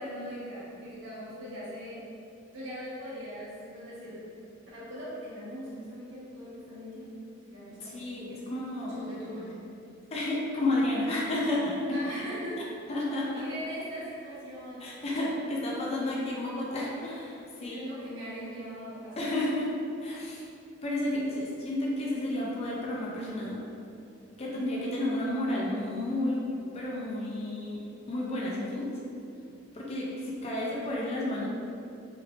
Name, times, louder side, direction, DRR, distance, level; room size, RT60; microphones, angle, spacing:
voice 1, 0.0-2.0 2.5-4.4 4.7-8.4 8.9-9.5 11.9-12.6 13.3-15.0 17.6-19.3 30.4-30.6, equal, 80° right, -9 dB, 1.2 m, -41 dB
voice 2, 7.8-9.0 10.1-12.0 12.9-13.4 14.8-17.8 19.2-19.7 20.0-20.4 20.8-23.6 24.4-26.4 26.7-27.8 28.1-28.9 29.7-31.5, left 1 dB, 35° left, -5 dB, 0.5 m, -31 dB
3.2 x 3.2 x 2.4 m, 2.6 s
head